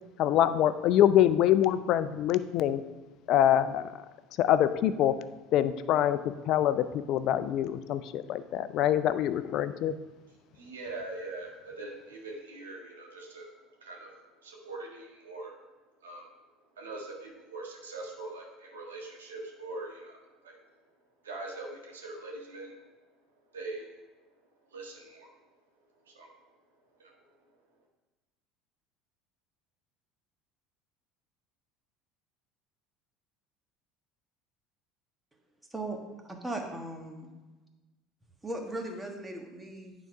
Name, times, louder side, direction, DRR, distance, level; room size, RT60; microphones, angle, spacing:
voice 1, 0.2-2.8 3.3-3.9 4.4-5.2 5.5-10.0, left 11 dB, 60° left, 13 dB, 0.4 m, -25 dB
voice 2, 10.5-13.5 13.8-15.6 16.0-16.3 16.8-20.6 21.2-22.9 23.5-24.0 24.6-25.3 26.0-26.3 27.0-27.2, right 2 dB, 90° right, -1 dB, 1.5 m, -42 dB
voice 3, 36.2-37.3 38.4-39.9, right 1 dB, 10° right, 2 dB, 1.4 m, -37 dB
9.1 x 3.9 x 4.7 m, 1.2 s
hypercardioid pair, 75°, 0 cm